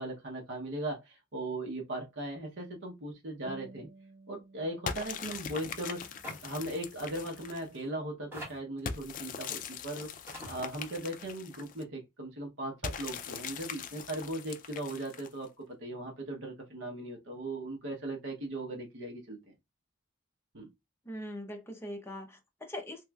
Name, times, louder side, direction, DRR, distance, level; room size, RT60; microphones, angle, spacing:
voice 1, 0.0-3.9 4.3-6.1 6.4-10.1 10.4-19.5 20.5-20.7, right 1 dB, 75° right, 0.9 m, -38 dB
sound 1, 3.4-8.4, right 2 dB, 35° right, 1.2 m, -56 dB
sound 2, 4.9-7.8 8.9-11.8 12.8-15.5, left 6 dB, 45° left, 0.4 m, -41 dB
sound 3, 6.2-6.5 6.7-6.9 7.8-7.9 8.3-8.8 9.8-9.9 10.3-10.6, equal, 10° right, 1.5 m, -44 dB
voice 2, 21.0-23.0, left 1 dB, 15° left, 0.7 m, -41 dB
3.1 x 3.0 x 2.3 m
head